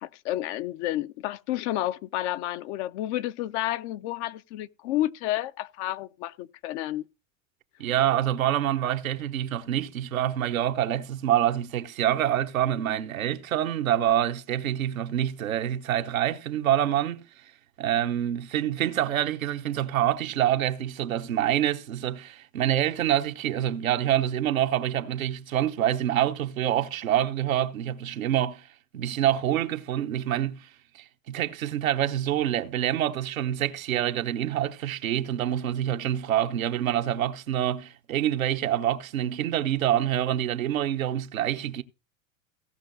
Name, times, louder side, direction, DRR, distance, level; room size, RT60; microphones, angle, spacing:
voice 1, 0.0-7.0, left 14 dB, 60° left, 0.7 m, -30 dB
voice 2, 7.8-17.2 17.8-28.7 28.9-30.7 30.9-41.8, right 11 dB, 90° right, 1.0 m, -26 dB
16.5 x 5.8 x 3.9 m
hypercardioid pair, 105°, 40 cm